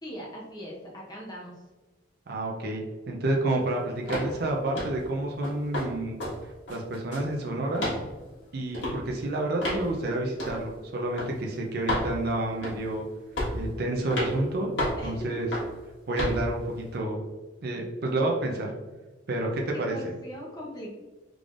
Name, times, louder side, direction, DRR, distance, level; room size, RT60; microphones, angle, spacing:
voice 1, 0.0-1.6 15.0-15.3 19.7-20.9, equal, 20° left, -3 dB, 0.6 m, -40 dB
voice 2, 2.3-6.2 6.7-7.9 8.5-13.0 13.5-15.5 16.1-17.2 17.6-18.7 19.3-20.1, right 2 dB, 55° right, 0 dB, 0.5 m, -29 dB
sound 1, 4.1-4.3 4.7-5.0 5.4-5.9 6.2-6.4 6.7-7.3 7.7-8.0 8.7-9.0 9.6-9.8 10.4-10.6 11.2-11.3 11.9-12.1 12.6-12.9 13.4-13.6 14.1-14.3 14.8-15.0 15.5-15.7 16.2-16.4, left 1 dB, 70° left, 1.5 m, -30 dB
3.6 x 3.3 x 2.4 m, 1.2 s
head